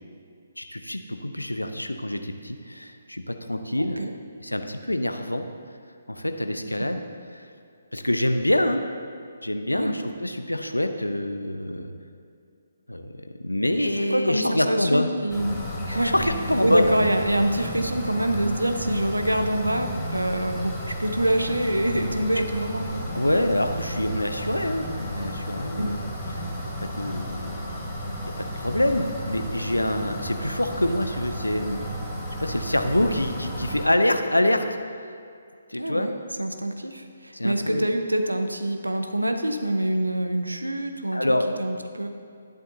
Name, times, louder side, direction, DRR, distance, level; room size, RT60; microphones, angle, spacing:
voice 1, 0.6-4.0 4.4-5.5 6.1-7.0 7.3-7.5 7.9-8.8 9.4-11.9 12.9-13.1 13.4-15.1 15.9-16.9 22.4-22.5 23.1-26.0 26.3-26.4 26.8-27.6 28.4-31.9 32.4-34.7 35.7-36.1 37.3-37.8 41.1-41.5, left 1 dB, 85° left, 7 dB, 0.7 m, -26 dB
voice 2, 3.8-4.1 9.7-9.9 14.1-15.6 15.9-16.1 16.6-23.0 25.8-25.9 35.8-36.1 36.4-41.2 41.6-42.1, right 1 dB, 85° right, 6 dB, 0.9 m, -25 dB
sound 1, 15.3-33.9, equal, 5° left, 1.7 m, -33 dB
12.0 x 10.5 x 2.8 m, 2.4 s
figure-of-eight pair, 140°, 0 cm